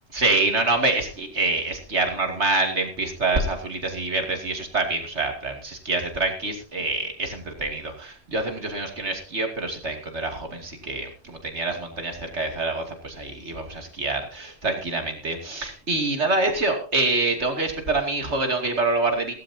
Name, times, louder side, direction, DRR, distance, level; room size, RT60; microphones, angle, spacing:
voice 1, 0.1-19.3, right 2 dB, 85° right, 3 dB, 3.0 m, -26 dB
17.0 x 15.5 x 2.8 m, 0.38 s
omnidirectional pair, 1.1 m